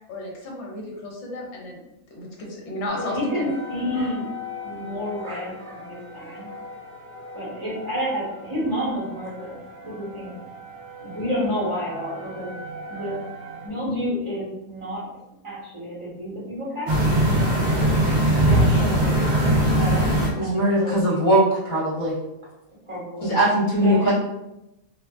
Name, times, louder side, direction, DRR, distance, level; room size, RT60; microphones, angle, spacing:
voice 1, 0.1-1.8 2.1-3.5, left 1 dB, 60° left, -2 dB, 0.9 m, -33 dB
sound 1, 2.9-13.7, left 1 dB, 80° right, 1.0 m, -39 dB
voice 2, 3.0-4.3 4.6-6.5 7.3-9.6 9.8-10.3 11.0-12.5 12.9-13.1 13.6-15.0 15.4-17.5 18.4-20.1 20.4-21.2 22.9-23.3 23.8-24.1, equal, 25° right, -7 dB, 0.8 m, -30 dB
sound 2, 16.9-20.3, right 1 dB, 55° right, 0.5 m, -19 dB
voice 3, 20.4-22.2 23.2-24.1, right 1 dB, 25° left, -6 dB, 0.7 m, -20 dB
2.5 x 2.2 x 2.3 m, 0.91 s
omnidirectional pair, 1.5 m